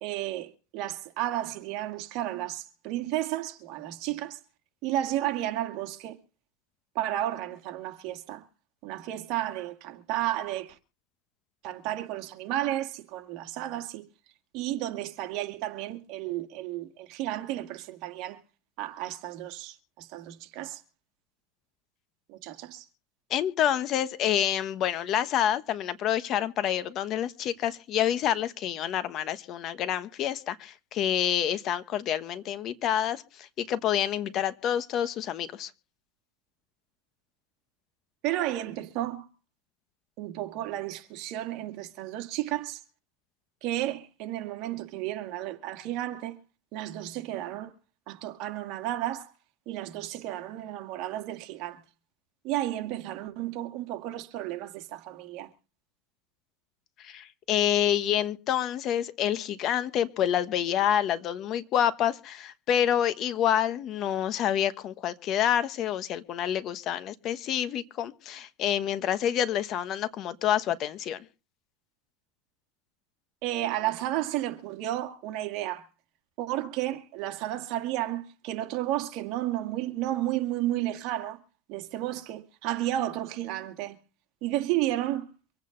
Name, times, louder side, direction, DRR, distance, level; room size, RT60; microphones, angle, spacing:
voice 1, 0.0-4.4 4.8-6.2 7.0-8.5 8.8-10.8 11.6-14.1 14.5-18.4 18.8-20.8 22.3-22.9 38.2-39.3 40.2-42.8 43.6-46.4 46.7-47.7 48.1-49.3 49.7-51.8 52.4-55.5 73.4-75.9 76.4-81.4 81.7-84.0 84.4-85.3, right 14 dB, 55° right, 2.0 m, -32 dB
voice 2, 23.3-35.7 57.0-71.2, left 10 dB, 40° left, 1.2 m, -28 dB
25.0 x 8.8 x 4.0 m
supercardioid pair, 125°, 0 cm